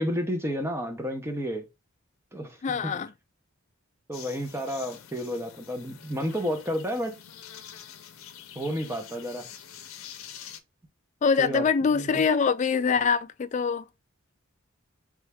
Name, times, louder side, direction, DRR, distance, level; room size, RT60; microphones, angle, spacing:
voice 1, 0.0-1.7 2.3-2.6 2.8-2.9 4.1-7.1 8.5-9.5 11.4-12.2, equal, 10° right, 0.7 m, -31 dB
voice 2, 2.6-3.1 11.2-13.8, left 5 dB, 35° left, 0.3 m, -24 dB
sound 1, 4.1-10.6, left 9 dB, 85° left, 0.6 m, -46 dB
3.5 x 3.2 x 3.4 m
head